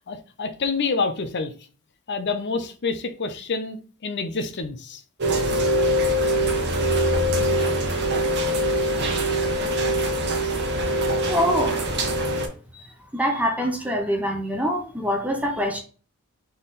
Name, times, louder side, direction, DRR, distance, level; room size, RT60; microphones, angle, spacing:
voice 1, 0.1-1.5 2.1-5.0, left 4 dB, 50° left, 0.6 m, -27 dB
Rain, 5.2-12.5, equal, 50° right, 1.0 m, -23 dB
voice 2, 11.3-11.8 12.7-12.9 13.1-15.8, equal, 5° right, 0.8 m, -24 dB
3.9 x 3.3 x 4.1 m
head